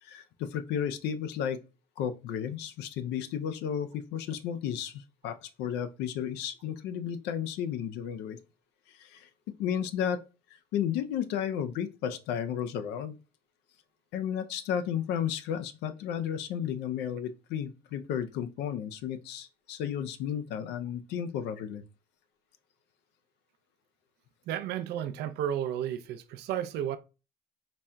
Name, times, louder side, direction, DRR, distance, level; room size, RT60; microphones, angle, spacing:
voice 1, 0.0-1.6 2.0-8.4 8.9-9.3 9.6-10.3 10.7-13.2 14.1-21.8, left 9 dB, 85° left, 0.5 m, -33 dB
voice 2, 24.5-27.0, right 10 dB, 80° right, 0.5 m, -32 dB
4.1 x 2.2 x 3.5 m
cardioid pair, 110°, 17 cm